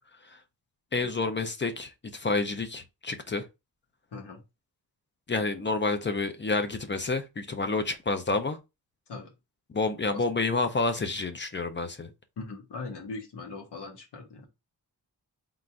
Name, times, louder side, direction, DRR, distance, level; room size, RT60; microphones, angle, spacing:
voice 1, 0.9-3.5 5.3-8.6 9.7-12.1, left 3 dB, 30° left, 0.6 m, -29 dB
voice 2, 4.1-4.4 9.1-9.3 10.1-10.2 12.4-14.5, left 3 dB, 90° left, 1.4 m, -40 dB
3.9 x 2.5 x 4.4 m
wide cardioid pair, 140°, 40 cm